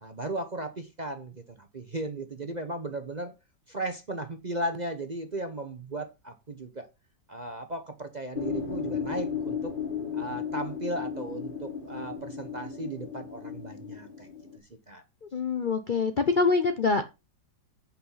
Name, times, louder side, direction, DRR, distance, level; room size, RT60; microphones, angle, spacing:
voice 1, 0.0-3.3 3.7-6.9 7.3-9.8 10.1-14.3 14.9-15.0, right 1 dB, 35° right, 0.8 m, -36 dB
sound 1, 8.3-14.6, left 6 dB, 30° left, 1.7 m, -35 dB
voice 2, 15.3-17.0, left 4 dB, 45° left, 0.6 m, -25 dB
8.4 x 5.8 x 5.6 m
omnidirectional pair, 1.9 m